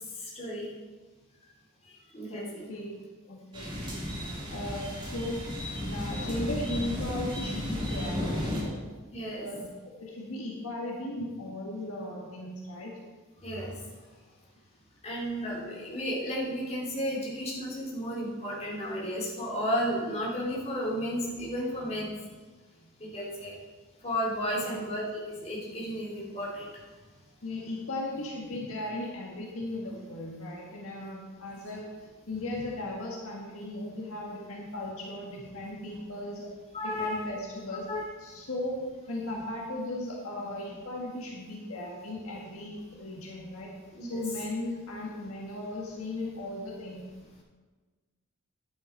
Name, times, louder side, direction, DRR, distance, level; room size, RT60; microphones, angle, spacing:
voice 1, 0.2-0.7 2.1-2.6 9.1-9.5 13.4-13.7 15.0-22.1 23.0-23.5 24.0-26.7 36.7-37.3 37.9-38.0 43.9-44.1, equal, 30° left, -5 dB, 3.2 m, -33 dB
voice 2, 2.3-2.9 3.2-4.0 4.5-5.4 5.8-8.8 9.3-9.7 10.0-12.9 24.5-24.8 27.4-36.5 36.8-37.9 38.2-38.8 39.1-43.7 44.0-47.0, left 1 dB, 70° left, -2 dB, 1.7 m, -37 dB
sound 1, 3.5-8.6, equal, 25° right, 3.2 m, -34 dB
11.0 x 9.0 x 4.5 m, 1.3 s
head